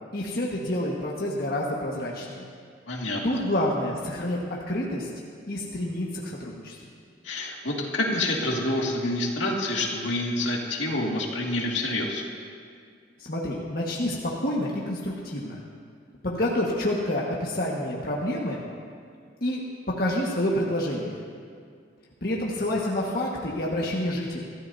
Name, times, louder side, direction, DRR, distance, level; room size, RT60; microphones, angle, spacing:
voice 1, 0.1-2.5 3.2-4.4 4.7-5.1 5.5-6.8 13.3-15.6 16.2-18.6 19.4-19.6 20.0-21.2 22.2-24.4, left 1 dB, 50° left, -4 dB, 1.6 m, -28 dB
voice 2, 2.9-3.2 7.2-12.2, left 1 dB, 80° left, -2 dB, 2.2 m, -27 dB
24.0 x 13.5 x 2.8 m, 2.2 s
head